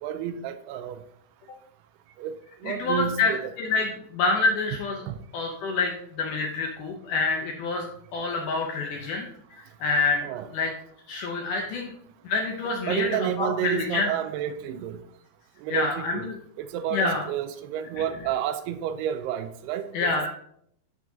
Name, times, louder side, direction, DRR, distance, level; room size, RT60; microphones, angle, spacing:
voice 1, 0.0-1.0 2.2-2.3 2.6-3.5 5.1-5.2 10.2-10.5 12.9-15.0 15.6-16.2 16.6-20.3, right 10 dB, 85° right, 10 dB, 2.6 m, -30 dB
voice 2, 2.6-5.0 5.3-10.7 11.1-11.9 12.2-13.1 13.4-14.1 15.7-16.4 16.9-17.3 19.9-20.3, left 4 dB, 75° left, 2 dB, 1.9 m, -27 dB
13.0 x 4.7 x 2.7 m, 0.68 s
omnidirectional pair, 4.6 m